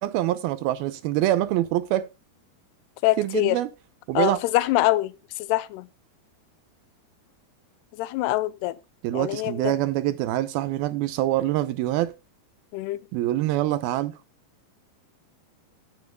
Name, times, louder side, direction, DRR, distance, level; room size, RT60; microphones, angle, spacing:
voice 1, 0.0-2.1 3.2-3.7 4.1-4.4 9.0-12.1 13.1-14.2, right 14 dB, 80° right, 2.5 m, -25 dB
voice 2, 3.0-3.6 4.1-5.9 8.0-8.8 9.1-9.8 12.7-13.0, left 17 dB, 85° left, 2.7 m, -24 dB
16.0 x 9.5 x 2.2 m
omnidirectional pair, 4.6 m